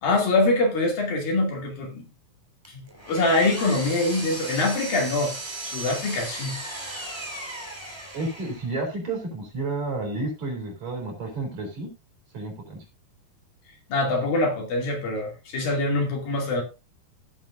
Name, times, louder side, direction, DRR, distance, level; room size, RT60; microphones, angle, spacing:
voice 1, 0.0-2.1 2.7-2.8 3.1-5.3 5.6-6.6 13.9-16.6, left 2 dB, 60° left, 4.3 m, -24 dB
Power tool, 2.6-8.7, right 1 dB, 10° right, 1.5 m, -36 dB
voice 2, 8.1-11.9 12.3-12.8, right 2 dB, 45° right, 4.6 m, -31 dB
16.5 x 7.2 x 2.6 m
omnidirectional pair, 4.8 m